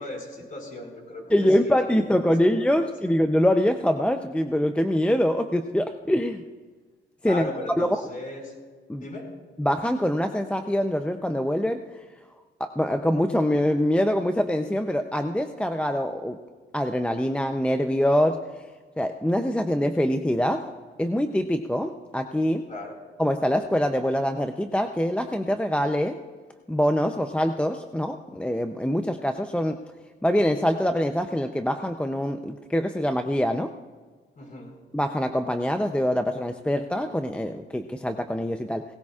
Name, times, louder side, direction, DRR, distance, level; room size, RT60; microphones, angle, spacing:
voice 1, 0.0-2.3 2.6-2.9 7.2-8.6 9.0-9.3 22.7-23.0 34.4-34.8, left 1 dB, 40° left, 0 dB, 5.4 m, -37 dB
voice 2, 1.3-6.4 7.2-7.5 7.8-7.9 8.9-9.0 9.6-11.8 12.6-16.4 16.7-18.5 19.0-20.7 21.0-22.6 23.2-26.2 26.7-29.8 30.2-33.7 34.9-38.8, equal, 5° left, 6 dB, 0.6 m, -24 dB
19.0 x 18.0 x 2.4 m, 1.4 s
cardioid pair, 90°, 20 cm